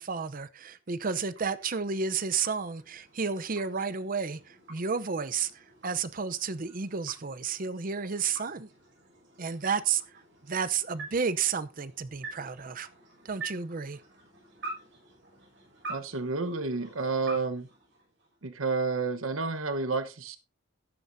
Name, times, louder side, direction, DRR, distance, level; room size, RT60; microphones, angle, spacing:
voice 1, 0.0-8.7 9.4-10.0 10.4-12.9 13.2-14.0, right 6 dB, 45° right, 0.7 m, -31 dB
sound 1, 0.8-18.6, right 3 dB, 60° right, 6.0 m, -47 dB
voice 2, 15.9-17.7 18.4-20.4, right 4 dB, 85° right, 1.1 m, -30 dB
13.0 x 11.0 x 2.7 m
head